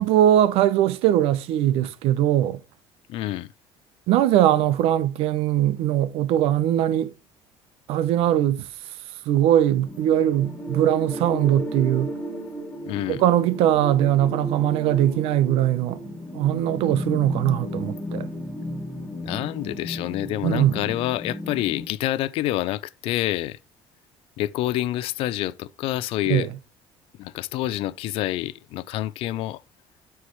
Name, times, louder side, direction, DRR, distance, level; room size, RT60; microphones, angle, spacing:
voice 1, 0.0-2.6 4.1-7.1 7.9-8.7 9.3-12.1 13.1-16.0 16.3-18.3 20.4-20.8 26.3-26.5, right 12 dB, 75° right, 0.8 m, -21 dB
voice 2, 3.1-3.5 12.9-13.2 19.2-23.6 24.4-26.5 27.2-29.6, left 15 dB, 65° left, 0.5 m, -27 dB
sound 1, 9.8-21.8, equal, 15° left, 2.5 m, -34 dB
13.0 x 4.7 x 3.1 m
cardioid pair, 140°, 10 cm